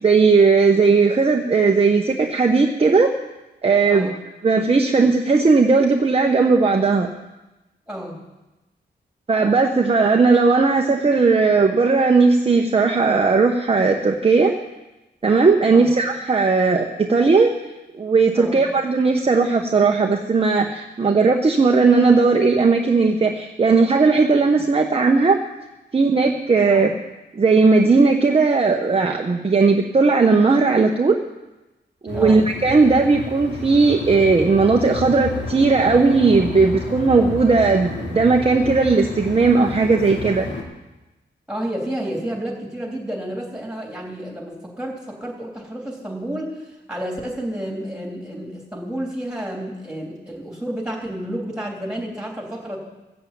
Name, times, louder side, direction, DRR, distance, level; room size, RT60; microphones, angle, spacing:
voice 1, 0.0-3.1 3.6-4.1 4.4-7.1 9.3-14.5 15.2-17.5 18.0-25.4 25.9-26.9 27.3-31.2 32.0-40.5, right 4 dB, 30° right, 2 dB, 0.9 m, -17 dB
voice 2, 7.9-8.2 15.7-15.9 18.4-18.6 26.7-26.8 32.1-32.4 41.5-52.8, right 1 dB, 5° right, -2 dB, 3.4 m, -30 dB
sound 1, 32.1-40.6, left 3 dB, 70° left, 2.4 m, -31 dB
15.0 x 7.6 x 8.5 m, 1.0 s
wide cardioid pair, 135°, 19 cm